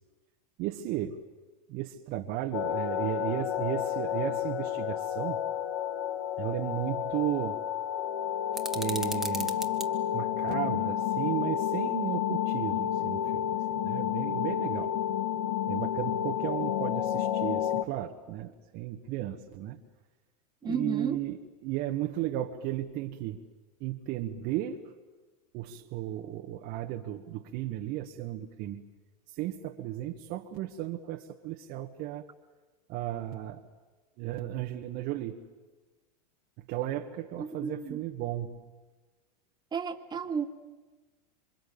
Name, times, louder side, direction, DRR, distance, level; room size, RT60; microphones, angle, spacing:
voice 1, 0.6-1.2 1.7-5.4 6.4-7.6 8.7-9.6 10.1-13.5 13.8-14.9 15.7-19.8 20.6-21.3 21.6-23.4 23.8-24.8 25.5-28.9 29.4-32.3 32.9-33.6 34.2-35.4 36.7-38.6, right 13 dB, 50° right, 1.6 m, -34 dB
sound 1, 2.5-17.8, left 10 dB, 60° left, 1.9 m, -30 dB
sound 2, 8.5-9.9, right 2 dB, ahead, 2.0 m, -37 dB
voice 2, 20.6-21.2 37.4-38.0 39.7-40.5, right 5 dB, 20° right, 2.3 m, -33 dB
27.5 x 25.0 x 8.7 m
hypercardioid pair, 100°, 21 cm